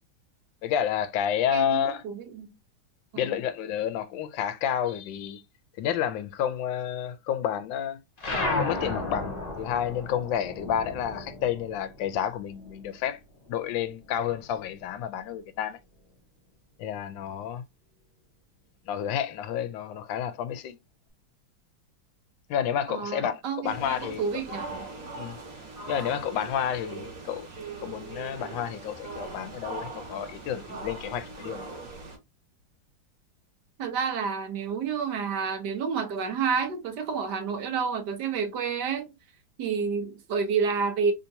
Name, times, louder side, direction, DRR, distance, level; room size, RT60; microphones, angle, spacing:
voice 1, 0.6-2.0 3.1-5.4 5.8-8.0 8.6-13.2 13.5-15.8 16.8-17.6 18.9-20.8 22.5-24.4 25.2-25.4 25.9-27.5 27.8-31.7, left 9 dB, 75° left, 1.2 m, -30 dB
voice 2, 1.5-2.5 3.1-3.4 22.9-24.8 33.8-39.1 39.6-41.1, right 6 dB, 65° right, 1.2 m, -29 dB
sound 1, 8.2-13.1 13.4-14.8, left 2 dB, 30° left, 0.7 m, -34 dB
sound 2, 23.6-32.2, right 3 dB, 45° right, 1.4 m, -40 dB
3.5 x 2.8 x 2.6 m
omnidirectional pair, 2.2 m